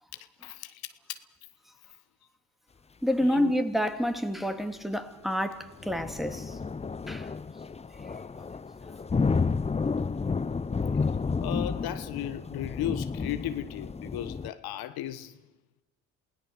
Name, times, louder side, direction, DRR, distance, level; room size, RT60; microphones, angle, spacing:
voice 1, 0.4-1.2 3.2-3.5 11.4-15.4, left 12 dB, 65° left, 1.2 m, -35 dB
voice 2, 3.0-6.6 7.1-7.3, equal, ahead, 2.3 m, -28 dB
sound 1, 5.7-14.5, left 4 dB, 15° left, 0.7 m, -31 dB
28.0 x 17.0 x 6.7 m
hypercardioid pair, 65°, 40 cm